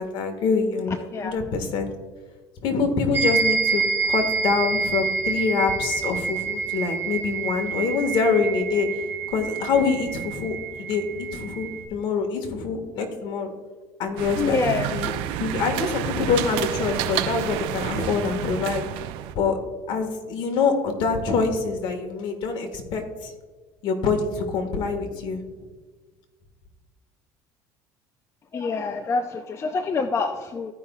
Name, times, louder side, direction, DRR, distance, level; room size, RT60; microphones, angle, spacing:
voice 1, 0.0-1.9 2.6-13.5 14.0-15.1 15.4-18.8 19.3-19.6 19.9-23.3 23.8-25.4, left 4 dB, 60° left, 5 dB, 1.6 m, -25 dB
sound 1, 3.1-11.8, right 5 dB, 25° right, 2.2 m, -27 dB
sound 2, 14.2-19.3, right 12 dB, 75° right, 0.6 m, -29 dB
voice 2, 14.4-14.9 28.5-30.7, left 4 dB, 30° left, 7 dB, 0.6 m, -26 dB
15.0 x 5.5 x 2.3 m, 1.4 s
supercardioid pair, 100°, 9 cm